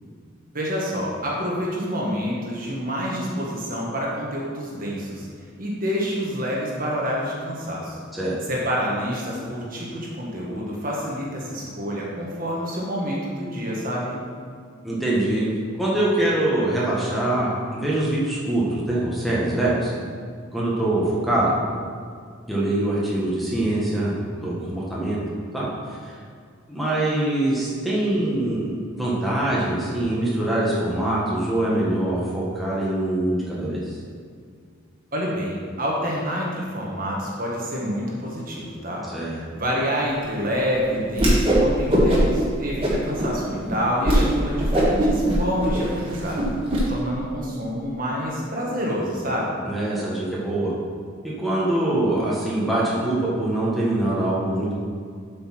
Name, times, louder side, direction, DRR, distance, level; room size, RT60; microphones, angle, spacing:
voice 1, 0.5-5.3 5.6-8.0 8.5-14.2 35.1-46.5 46.9-49.6, equal, 40° right, -3 dB, 1.5 m, -27 dB
voice 2, 14.8-15.5 15.8-19.9 20.5-21.5 22.5-24.1 24.4-25.2 25.5-26.1 26.7-34.0 39.1-39.4 49.6-50.7 51.4-54.7, right 1 dB, ahead, -8 dB, 1.5 m, -23 dB
Whoosh swoosh swish, 41.1-41.6 41.9-42.4 42.8-43.3 43.7-43.8 44.0-44.2 44.6-46.8, right 1 dB, 25° right, 1.6 m, -20 dB
8.0 x 5.4 x 5.9 m, 2.1 s
head